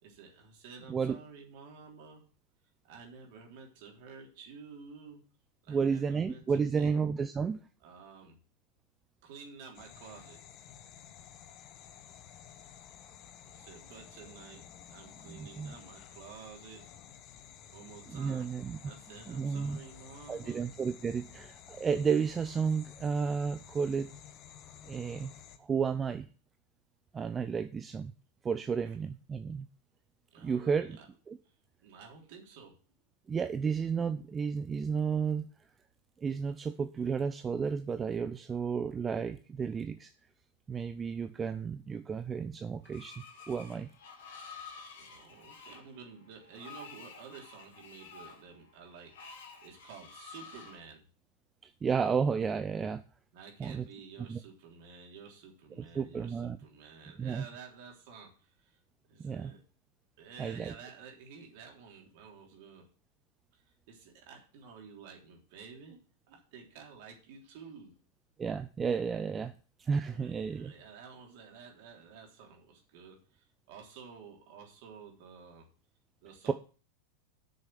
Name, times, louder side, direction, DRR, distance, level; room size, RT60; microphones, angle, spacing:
voice 1, 0.0-2.3 2.8-5.3 5.6-6.9 7.8-8.4 9.2-10.4 13.4-16.9 17.7-18.5 18.8-20.7 30.3-31.1 31.4-31.6 31.8-32.8 44.5-44.7 45.0-51.1 53.3-58.8 59.1-59.6 60.2-62.9 63.5-63.6 63.9-68.0 70.0-75.7 76.2-76.5, right 5 dB, 50° right, 1 dB, 3.5 m, -51 dB
voice 2, 5.7-7.6 15.3-15.7 18.1-18.8 19.3-19.8 20.3-24.1 24.9-25.3 25.6-26.3 27.1-28.1 28.4-29.7 30.4-31.0 31.3-31.4 33.3-35.5 36.2-40.1 40.7-43.9 51.6-53.0 53.6-53.9 54.3-54.4 55.8-56.6 57.2-57.5 59.2-59.5 60.4-60.7 68.4-69.5 69.8-70.7, right 6 dB, 20° right, 10 dB, 0.6 m, -32 dB
sound 1, 9.7-25.6, left 9 dB, 35° left, 1.2 m, -52 dB
Screech, 42.8-50.8, left 5 dB, 55° left, 2.4 m, -50 dB
8.1 x 6.5 x 7.5 m, 0.38 s
figure-of-eight pair, 90°, 0 cm